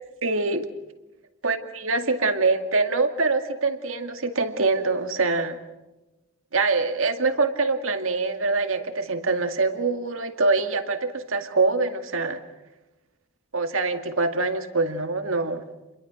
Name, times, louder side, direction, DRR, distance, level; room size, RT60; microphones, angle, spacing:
voice 1, 0.2-0.7 1.4-5.6 6.5-12.4 13.5-15.7, right 3 dB, 75° right, 7 dB, 2.2 m, -24 dB
29.5 x 22.5 x 6.3 m, 1.0 s
head